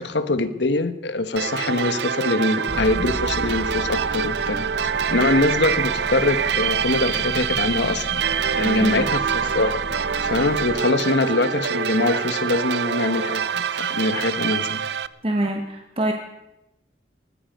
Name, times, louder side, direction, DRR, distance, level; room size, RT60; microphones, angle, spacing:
voice 1, 0.0-4.7 5.1-8.2 8.5-14.8, left 2 dB, 70° left, 12 dB, 1.2 m, -23 dB
sound 1, 1.4-15.1, right 7 dB, 65° right, 0.5 m, -25 dB
sound 2, 2.7-10.7, equal, 30° left, 4.1 m, -35 dB
voice 2, 8.6-9.1 15.2-16.1, right 1 dB, 30° right, 3 dB, 1.4 m, -25 dB
20.0 x 14.0 x 5.3 m, 0.91 s
head